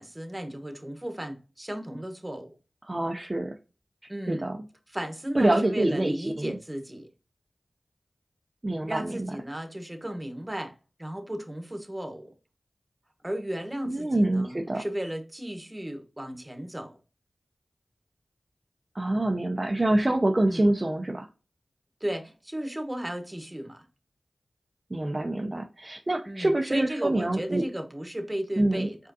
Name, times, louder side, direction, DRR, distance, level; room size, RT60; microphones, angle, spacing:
voice 1, 0.0-2.5 4.1-4.5 4.9-7.1 8.9-10.7 11.0-12.3 13.2-16.9 20.5-20.7 22.0-23.8 26.3-29.0, right 1 dB, 20° right, 1.1 m, -35 dB
voice 2, 2.9-3.6 4.3-4.6 5.3-6.6 8.6-9.3 13.8-14.8 18.9-21.3 24.9-27.6 28.6-28.9, right 1 dB, 35° right, 0.6 m, -26 dB
4.9 x 3.6 x 2.7 m
cardioid pair, 40°, 0 cm